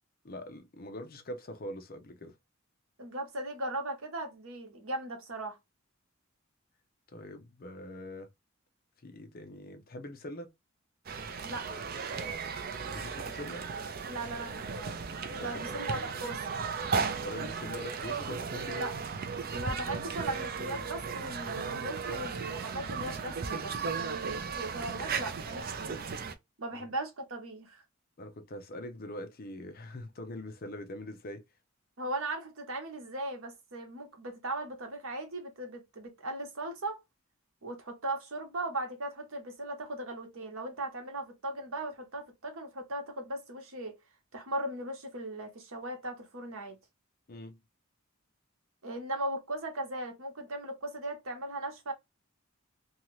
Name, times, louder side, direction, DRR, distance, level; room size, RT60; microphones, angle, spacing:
voice 1, 0.2-2.3 7.1-8.3 9.0-10.5 12.8-13.6 15.4-16.1 17.2-18.9 26.7-26.8 28.2-31.4 47.3-47.6, left 1 dB, 45° left, 0.6 m, -43 dB
voice 2, 3.0-5.6 11.4-11.7 14.1-15.0 15.4-16.5 18.8-18.9 19.5-26.0 26.6-27.8 32.0-37.0 37.6-43.9 44.3-46.8 48.8-51.9, right 2 dB, 75° right, 1.0 m, -38 dB
sound 1, 11.1-26.3, right 5 dB, 45° right, 0.5 m, -36 dB
2.7 x 2.4 x 3.0 m
head